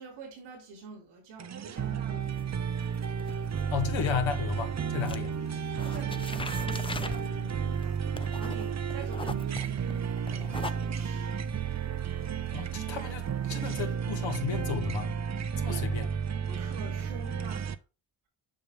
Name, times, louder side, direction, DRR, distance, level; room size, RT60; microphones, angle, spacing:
voice 1, 0.0-2.5 5.4-11.4 15.6-15.8 16.5-17.8, right 4 dB, 90° right, 3.7 m, -46 dB
sound 1, 1.4-17.7, right 7 dB, 35° right, 0.7 m, -32 dB
sound 2, 2.2-4.7 5.0-13.9, left 3 dB, 10° left, 0.7 m, -42 dB
voice 2, 3.7-5.3 12.5-15.2 15.6-16.1, left 7 dB, 70° left, 2.1 m, -33 dB
7.3 x 5.9 x 3.7 m
cardioid pair, 75°, 48 cm